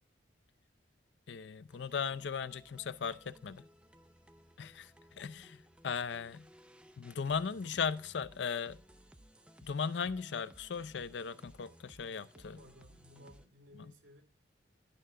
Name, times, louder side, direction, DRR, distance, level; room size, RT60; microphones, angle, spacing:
voice 1, 1.3-3.6 4.6-4.9 5.2-5.6 5.8-6.5 7.0-8.8 9.6-12.6 13.8-13.9, left 6 dB, 70° left, 0.5 m, -37 dB
sound 1, 1.7-13.5, equal, 5° right, 0.6 m, -60 dB
voice 2, 12.1-14.2, left 1 dB, 80° right, 2.1 m, -59 dB
11.5 x 5.6 x 3.7 m
head